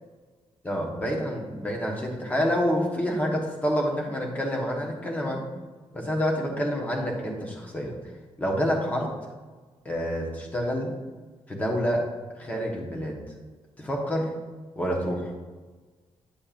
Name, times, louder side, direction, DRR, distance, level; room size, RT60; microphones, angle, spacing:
voice 1, 0.6-5.4 5.9-8.0 8.4-9.1 9.8-10.9 11.5-12.1 12.3-13.2 13.8-14.3 14.8-15.3, equal, 15° left, -1 dB, 1.1 m, -28 dB
10.0 x 7.4 x 2.5 m, 1.3 s
wide cardioid pair, 170°, 11 cm